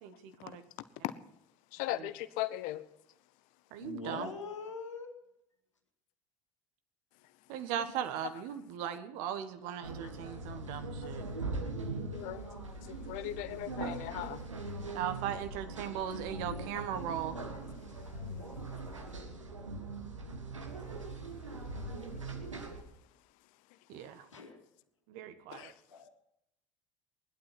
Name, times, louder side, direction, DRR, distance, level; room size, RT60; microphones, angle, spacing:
voice 1, 0.0-0.6 2.0-2.1 3.7-4.3 7.5-11.2 14.9-17.4 23.9-24.3 25.1-25.7, right 9 dB, 60° right, 9 dB, 1.6 m, -38 dB
voice 2, 1.7-2.8 12.1-12.4 12.9-14.4 25.5-25.7, left 15 dB, 60° left, 15 dB, 1.0 m, -38 dB
voice 3, 3.8-5.1 24.3-24.6 25.9-26.1, left 4 dB, 85° left, 3 dB, 2.3 m, -42 dB
sound 1, 9.8-22.8, right 2 dB, 85° right, 1.6 m, -41 dB
19.5 x 12.0 x 6.0 m, 0.81 s
figure-of-eight pair, 60°, 16 cm